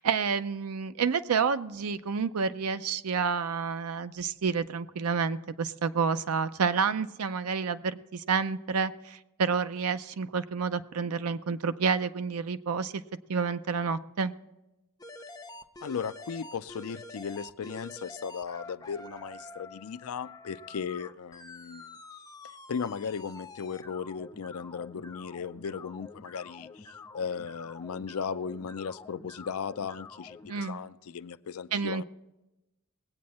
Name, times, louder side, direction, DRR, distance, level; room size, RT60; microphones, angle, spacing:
voice 1, 0.0-13.0 13.3-14.3 30.5-30.8 31.7-32.0, right 5 dB, 75° right, 12 dB, 0.5 m, -29 dB
sound 1, 15.0-30.8, left 3 dB, 15° left, 0.5 m, -47 dB
voice 2, 15.8-21.9 22.4-32.0, left 6 dB, 70° left, 13 dB, 0.4 m, -37 dB
20.0 x 8.6 x 4.2 m, 0.98 s
head